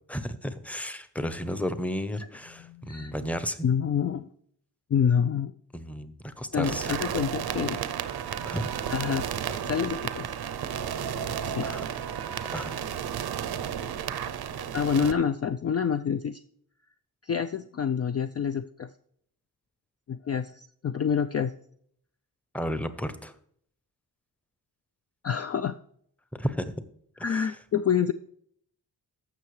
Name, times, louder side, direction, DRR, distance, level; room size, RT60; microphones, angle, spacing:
voice 1, 0.1-3.7 5.7-6.9 8.5-8.7 11.6-11.8 12.5-12.7 22.5-23.3 26.3-26.8 27.3-27.5, equal, 5° left, 11 dB, 0.8 m, -33 dB
voice 2, 2.6-3.1 3.6-4.3 4.9-5.5 6.5-7.8 8.9-10.3 11.5-11.7 14.7-16.4 17.2-18.9 20.1-21.5 25.2-25.7 27.2-28.1, left 7 dB, 40° left, 9 dB, 0.4 m, -27 dB
sound 1, 6.6-15.1, right 9 dB, 70° right, 0.6 m, -32 dB
14.5 x 5.8 x 3.2 m, 0.65 s
cardioid pair, 60°, 40 cm